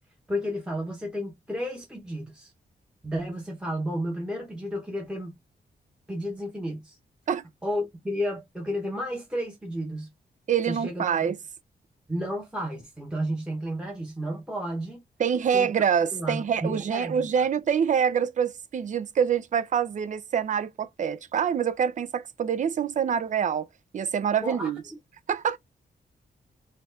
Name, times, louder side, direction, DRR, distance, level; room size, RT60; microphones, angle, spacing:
voice 1, 0.3-2.5 3.0-5.3 6.1-7.0 7.6-10.1 10.6-11.3 12.1-15.0 15.5-15.7 16.1-17.4 24.4-24.7, equal, 5° right, 1.0 m, -32 dB
voice 2, 10.5-11.4 15.2-23.7 23.9-24.8 25.3-25.6, right 7 dB, 45° right, 0.4 m, -25 dB
4.4 x 2.4 x 3.8 m
wide cardioid pair, 160°, 17 cm